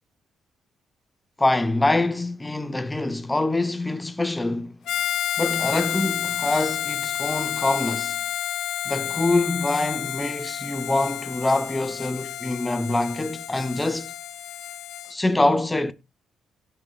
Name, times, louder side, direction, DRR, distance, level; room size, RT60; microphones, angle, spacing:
voice 1, 1.4-4.8 5.4-8.2 8.8-14.1 15.1-15.9, left 2 dB, 15° left, 1.1 m, -25 dB
Harmonica, 4.9-15.1, left 12 dB, 75° left, 0.7 m, -30 dB
18.0 x 6.6 x 2.5 m
cardioid pair, 90°, 0 cm